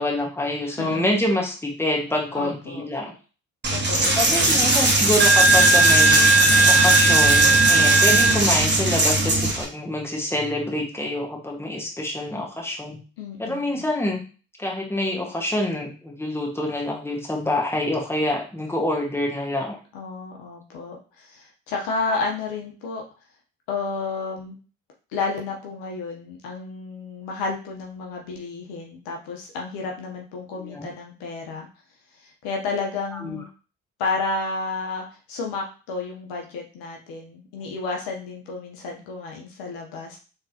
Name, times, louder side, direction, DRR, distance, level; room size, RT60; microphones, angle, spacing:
voice 1, 0.0-3.1 4.2-6.3 6.6-13.0 13.4-14.2 14.6-19.8 30.6-30.9 33.1-33.4, left 1 dB, 5° left, -1 dB, 1.5 m, -26 dB
voice 2, 0.7-1.1 2.3-2.9 3.7-4.5 13.2-13.8 19.9-23.0 23.7-24.6 25.1-31.7 32.2-33.5 34.0-40.2, left 4 dB, 75° left, 1 dB, 1.0 m, -31 dB
Coin (dropping), 3.6-9.6, right 2 dB, 30° right, 1.4 m, -17 dB
3.8 x 3.3 x 2.8 m, 0.35 s
hypercardioid pair, 50°, 36 cm